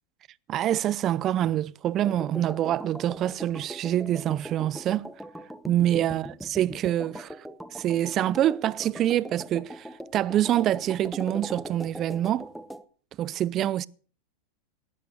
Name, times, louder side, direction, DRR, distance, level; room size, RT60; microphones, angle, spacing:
voice 1, 0.5-5.1 5.7-7.5 7.7-12.5 13.2-13.9, right 12 dB, 35° right, 0.6 m, -26 dB
sound 1, 2.0-12.8, right 1 dB, ahead, 1.0 m, -41 dB
19.0 x 8.7 x 6.4 m
supercardioid pair, 125°, 0 cm